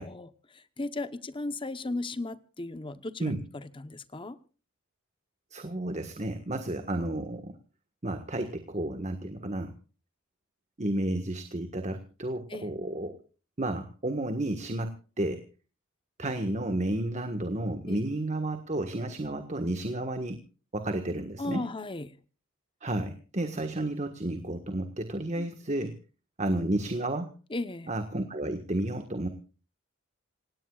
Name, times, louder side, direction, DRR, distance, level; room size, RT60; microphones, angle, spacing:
voice 1, 0.0-4.4 12.5-12.7 17.9-18.0 21.4-22.1 25.4-25.5 27.5-27.9, left 2 dB, 25° left, 12 dB, 0.9 m, -36 dB
voice 2, 5.5-7.6 8.0-9.7 10.8-13.2 13.6-15.4 16.2-20.4 20.7-21.6 22.8-25.9 26.4-27.3 27.9-29.3, right 1 dB, 35° right, 7 dB, 1.5 m, -32 dB
27.5 x 18.0 x 2.4 m, 0.36 s
head